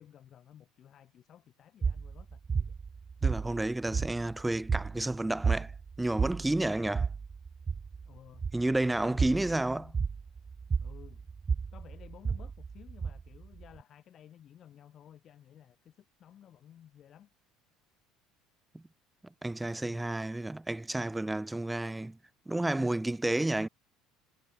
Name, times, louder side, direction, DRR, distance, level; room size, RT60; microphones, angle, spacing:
voice 1, 0.0-2.7 8.0-10.0 10.8-11.3 11.7-17.3, left 10 dB, 45° left, 6.3 m, -55 dB
sound 1, 1.8-13.8, right 5 dB, 30° right, 0.5 m, -33 dB
voice 2, 3.2-5.7 6.0-7.1 8.5-9.8 18.7-18.8 19.4-22.2 22.5-23.7, right 2 dB, 10° right, 1.4 m, -31 dB
figure-of-eight pair, 65°, 0 cm